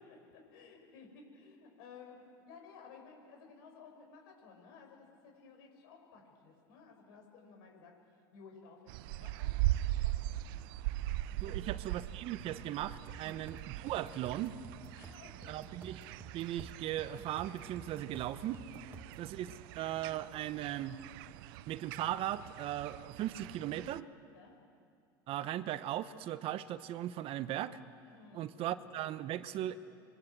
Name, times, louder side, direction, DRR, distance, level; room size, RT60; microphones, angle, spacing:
voice 1, 0.0-7.9 8.3-10.6 11.4-11.7 13.2-13.5 14.9-15.6 18.9-19.0 24.3-24.6 28.1-28.9, left 5 dB, 75° left, 2 dB, 7.3 m, -56 dB
sound 1, 8.9-24.0, right 15 dB, 70° right, 0.6 m, -40 dB
voice 2, 11.4-14.6 15.5-16.0 16.3-18.6 19.2-19.5 19.8-21.0 21.7-24.0 25.3-27.8 28.3-29.8, right 12 dB, 50° right, 13 dB, 1.1 m, -38 dB
sound 2, 13.1-19.3, right 4 dB, 15° right, 1.5 m, -53 dB
27.0 x 23.0 x 7.6 m, 2.5 s
hypercardioid pair, 95°, 12 cm